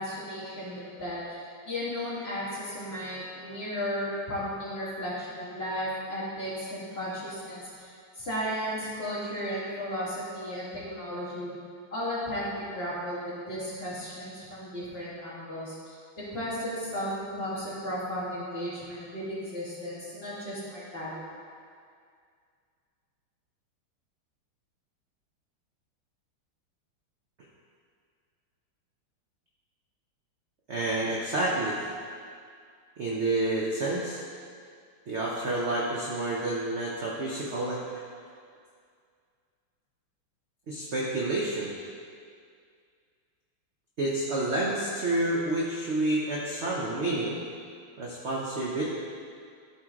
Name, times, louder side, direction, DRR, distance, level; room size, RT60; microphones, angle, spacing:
voice 1, 0.0-7.9 8.2-11.6 11.9-16.0 16.3-21.2, equal, 30° left, -9 dB, 2.1 m, -34 dB
voice 2, 30.7-31.9 33.0-34.2 35.1-38.0 40.7-41.7 44.0-47.4 48.0-48.8, right 2 dB, 60° right, -5 dB, 0.7 m, -29 dB
12.0 x 4.7 x 3.7 m, 2.2 s
omnidirectional pair, 2.4 m